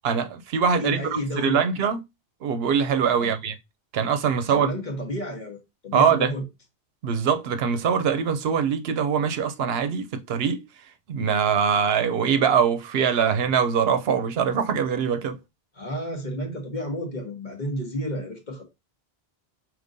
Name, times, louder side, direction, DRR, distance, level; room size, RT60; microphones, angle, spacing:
voice 1, 0.0-2.0 2.4-3.6 3.9-4.7 5.9-6.3 7.0-10.6 11.1-15.4, right 7 dB, 75° right, 0.8 m, -23 dB
voice 2, 0.7-1.7 3.2-3.3 4.4-6.4 15.7-18.6, equal, 50° left, 1.3 m, -31 dB
5.1 x 2.9 x 2.6 m
omnidirectional pair, 1.0 m